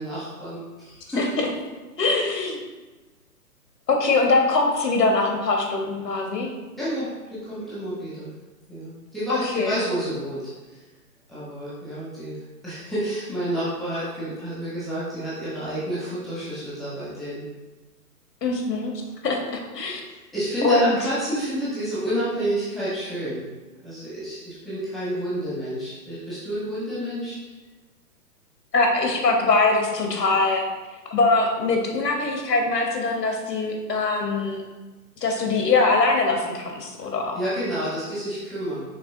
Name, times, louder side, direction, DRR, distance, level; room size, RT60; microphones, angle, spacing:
voice 1, 0.0-1.2 6.8-8.3 8.7-10.8 11.3-12.4 12.6-17.4 20.1-23.4 23.8-27.3 37.3-38.8, equal, ahead, -11 dB, 0.3 m, -30 dB
voice 2, 1.2-1.5 2.0-2.6 3.9-6.5 9.3-9.8 18.4-18.9 19.2-20.0 20.6-21.0 28.7-30.6 31.1-34.6 35.2-37.4, left 3 dB, 85° left, 2 dB, 1.2 m, -22 dB
5.8 x 3.4 x 2.7 m, 1.2 s
figure-of-eight pair, 130°, 48 cm